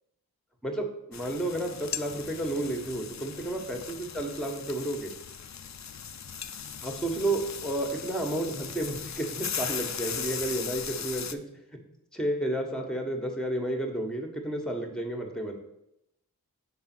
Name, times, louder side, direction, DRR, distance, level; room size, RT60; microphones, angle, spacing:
voice 1, 0.6-5.1 6.8-11.4 12.1-15.6, right 1 dB, ahead, 3 dB, 1.3 m, -31 dB
sound 1, 1.1-11.3, left 7 dB, 50° left, 0.5 m, -38 dB
6.2 x 3.6 x 6.1 m, 0.83 s
wide cardioid pair, 45°, 37 cm